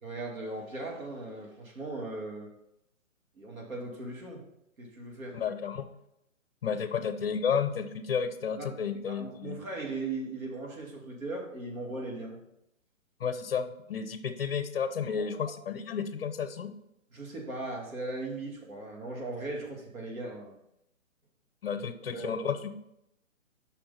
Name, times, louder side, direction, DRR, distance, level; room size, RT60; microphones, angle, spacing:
voice 1, 0.0-2.5 3.4-4.5 4.8-5.4 8.6-8.7 9.1-12.4 15.2-15.3 17.1-20.5 21.7-21.8 22.1-22.5, right 2 dB, 85° right, -1 dB, 2.5 m, -38 dB
voice 2, 5.3-5.9 6.6-9.6 13.2-16.7 21.6-22.7, left 6 dB, 45° left, 10 dB, 0.7 m, -32 dB
5.7 x 4.4 x 5.6 m, 0.82 s
hypercardioid pair, 160°, 40 cm